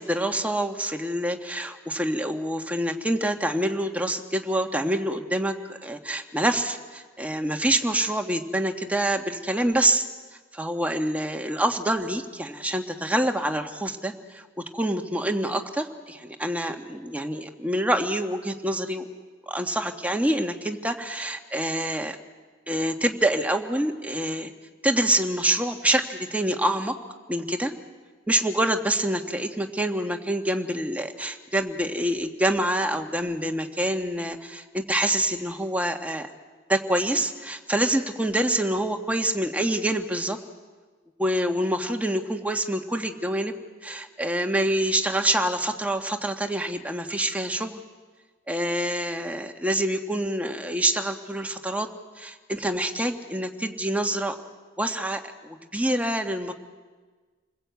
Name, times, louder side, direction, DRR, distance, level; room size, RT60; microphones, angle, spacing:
voice 1, 0.0-10.1 10.5-14.5 14.7-19.1 19.5-22.2 22.7-24.5 24.8-26.9 27.3-27.7 28.3-36.3 36.7-40.4 41.2-43.5 43.8-47.8 48.5-51.9 52.2-54.3 54.8-56.5, right 1 dB, 5° right, 4 dB, 1.5 m, -26 dB
29.0 x 20.5 x 8.3 m, 1.4 s
head